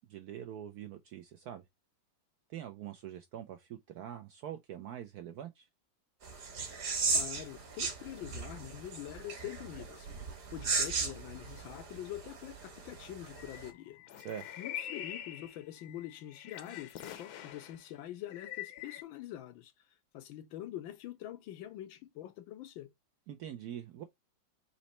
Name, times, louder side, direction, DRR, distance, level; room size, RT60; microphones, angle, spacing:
voice 1, 0.1-1.6 2.5-5.7 14.2-14.5 23.3-24.0, right 10 dB, 75° right, 0.9 m, -44 dB
sound 1, 6.2-13.7, right 4 dB, 50° right, 1.7 m, -37 dB
voice 2, 7.1-10.1 10.5-14.0 14.6-19.7 20.1-22.9, left 13 dB, 85° left, 1.5 m, -45 dB
sound 2, 13.4-17.8 18.3-19.0, left 11 dB, 65° left, 1.1 m, -45 dB
4.2 x 2.9 x 4.1 m
omnidirectional pair, 2.1 m